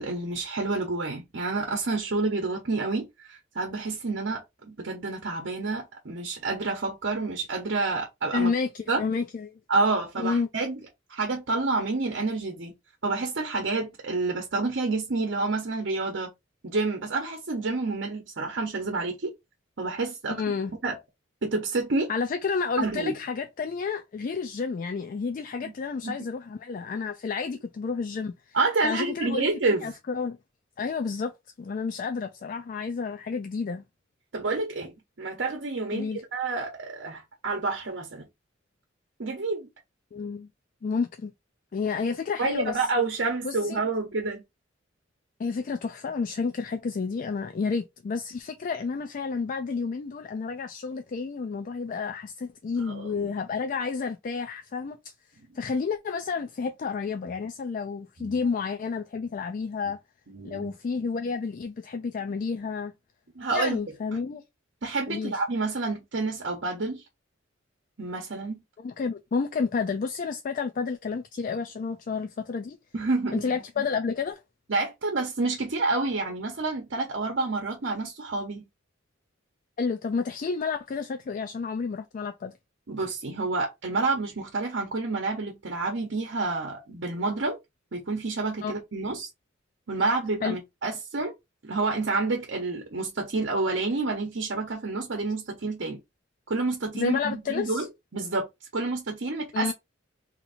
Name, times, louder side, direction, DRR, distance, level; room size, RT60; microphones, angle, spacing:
voice 1, 0.0-8.5 8.9-9.0 9.7-10.8 11.1-12.7 13.0-16.3 16.6-19.3 19.8-20.4 20.8-21.0 21.4-22.1 22.8-23.1 25.6-25.7 26.0-26.2 28.5-29.9 34.3-38.2 39.2-39.7 42.4-44.4 52.9-53.3 58.2-58.4 60.3-60.7 63.4-63.8 64.8-67.0 68.0-68.6 72.9-73.8 74.7-78.6 82.9-87.6 87.9-89.3 89.9-91.3 91.6-96.0 96.5-97.9 98.1-98.5 98.7-99.7, right 3 dB, 65° right, 0.9 m, -29 dB
voice 2, 8.3-9.6 10.2-10.5 20.3-20.7 22.1-28.6 28.8-29.5 29.8-30.4 30.8-33.8 35.9-36.2 40.1-40.5 40.8-41.3 41.7-42.8 43.4-43.8 45.4-55.1 55.5-60.0 60.4-62.9 63.5-64.4 65.1-65.4 68.8-72.8 73.3-74.4 79.8-82.5 88.6-88.7 90.4-90.6 96.9-97.9 99.5-99.7, left 5 dB, 45° left, 0.3 m, -30 dB
2.9 x 2.6 x 4.0 m
head